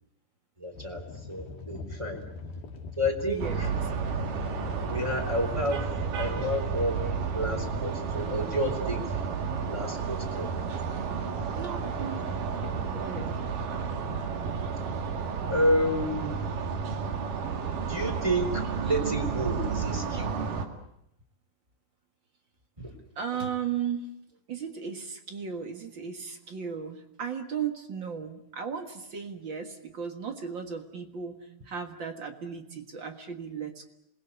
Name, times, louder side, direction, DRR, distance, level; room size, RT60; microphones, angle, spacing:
voice 1, 0.6-1.0 1.3-2.2 3.0-3.7 4.8-5.8 6.2-9.2 9.7-10.5 15.5-16.3 17.9-20.3 22.8-22.9, equal, 10° right, 1 dB, 3.4 m, -30 dB
sound 1, 0.7-7.9, left 3 dB, 80° left, 4.2 m, -40 dB
voice 2, 3.2-3.6 11.5-12.3 12.6-13.3 23.1-24.1 24.5-33.8, right 7 dB, 45° right, 7 dB, 1.7 m, -36 dB
sound 2, 3.4-20.7, right 6 dB, 65° right, 3.5 m, -32 dB
27.5 x 21.0 x 8.2 m, 0.76 s
omnidirectional pair, 4.2 m